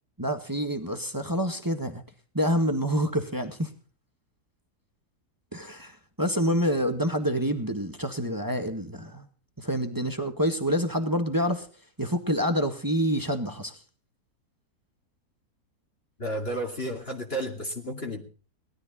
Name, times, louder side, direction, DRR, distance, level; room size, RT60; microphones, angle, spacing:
voice 1, 0.2-2.0 2.3-3.7 5.5-9.3 9.6-11.7 12.0-13.8, equal, 15° right, 7 dB, 1.7 m, -27 dB
voice 2, 16.2-18.2, right 1 dB, 35° left, 1 dB, 2.6 m, -32 dB
19.0 x 13.0 x 4.1 m, 0.39 s
omnidirectional pair, 1.7 m